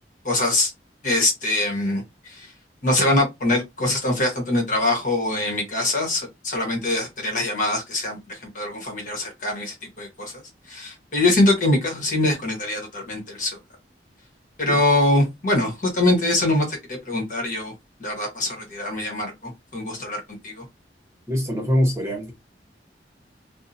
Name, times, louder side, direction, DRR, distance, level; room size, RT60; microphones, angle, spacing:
voice 1, 0.2-0.7 1.0-2.5 2.8-10.3 10.7-13.6 14.6-17.7 18.0-20.6, left 2 dB, 45° left, 1.1 m, -23 dB
voice 2, 21.3-22.3, equal, 15° right, 0.9 m, -23 dB
2.7 x 2.1 x 2.6 m
head